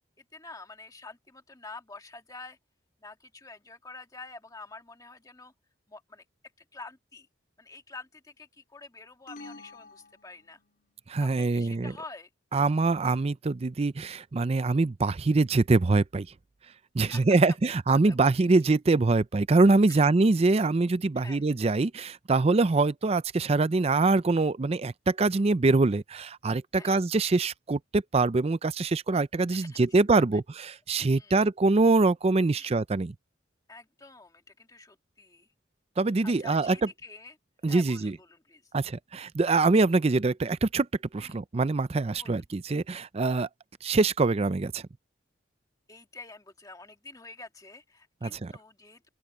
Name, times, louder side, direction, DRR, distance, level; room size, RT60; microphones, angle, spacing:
voice 1, 0.3-2.6 3.0-5.5 5.9-6.2 6.7-7.3 7.6-10.6 11.2-12.3 17.0-17.2 18.1-18.5 19.9-20.0 21.1-21.4 26.7-27.0 29.5-29.8 30.1-30.2 31.1-31.4 32.6-32.7 33.7-35.5 36.2-37.4 37.6-38.6 41.2-41.4 42.2-42.4 45.9-49.1, left 3 dB, 20° left, 1.7 m, -47 dB
sound 1, 9.3-10.9, left 2 dB, 50° left, 4.7 m, -48 dB
voice 2, 11.1-11.9 12.5-16.3 16.9-33.1 36.0-36.8 37.6-38.1 38.7-40.9 41.1-43.5 43.8-44.8 48.2-48.5, right 3 dB, 35° right, 0.5 m, -24 dB
open air
head